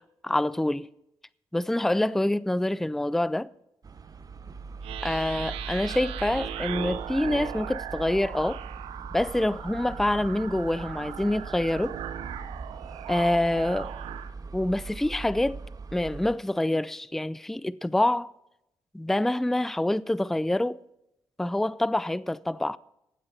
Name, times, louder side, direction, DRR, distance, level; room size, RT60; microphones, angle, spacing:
voice 1, 0.2-0.9 1.5-3.5 5.0-8.6 9.1-12.0 13.1-13.9 14.5-15.6 15.9-18.3 18.9-20.8 21.4-22.8, left 1 dB, 5° left, 0.4 m, -26 dB
sound 1, 3.8-16.3, right 4 dB, 40° right, 0.8 m, -41 dB
sound 2, 4.8-14.3, right 10 dB, 90° right, 0.8 m, -38 dB
16.0 x 9.2 x 4.5 m
supercardioid pair, 65°, 9 cm